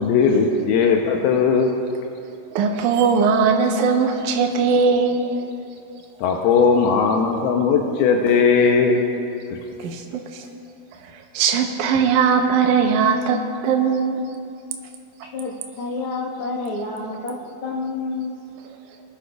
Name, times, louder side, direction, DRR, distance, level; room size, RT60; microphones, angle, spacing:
voice 1, 0.0-1.7 6.2-9.0, left 5 dB, 85° left, 2 dB, 2.5 m, -18 dB
voice 2, 2.6-5.3 9.8-10.5 11.0-14.2, right 5 dB, 75° right, 3 dB, 1.9 m, -20 dB
voice 3, 15.3-17.3 17.6-18.4, left 3 dB, 55° left, -3 dB, 1.6 m, -29 dB
22.5 x 10.5 x 2.4 m, 2.6 s
omnidirectional pair, 4.5 m